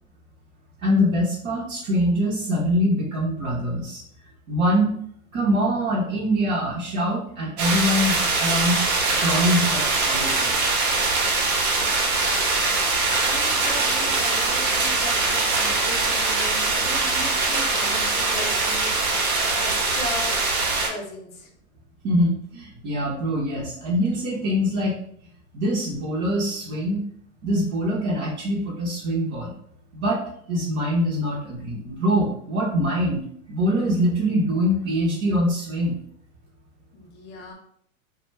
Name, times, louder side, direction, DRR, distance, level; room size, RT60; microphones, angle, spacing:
voice 1, 0.8-4.0 4.5-5.0 5.3-8.8 9.1-10.5 22.0-25.0 25.5-27.0 27.4-29.5 29.9-30.2 30.5-33.2 33.5-36.0, equal, 30° right, -6 dB, 0.6 m, -23 dB
sound 1, 7.6-20.9, right 3 dB, 85° right, 0.9 m, -22 dB
voice 2, 12.1-12.7 13.2-19.0 19.3-20.4 20.9-21.5 36.9-37.5, left 2 dB, 25° left, -1 dB, 0.6 m, -37 dB
2.2 x 2.1 x 3.1 m, 0.66 s
hypercardioid pair, 115°, 42 cm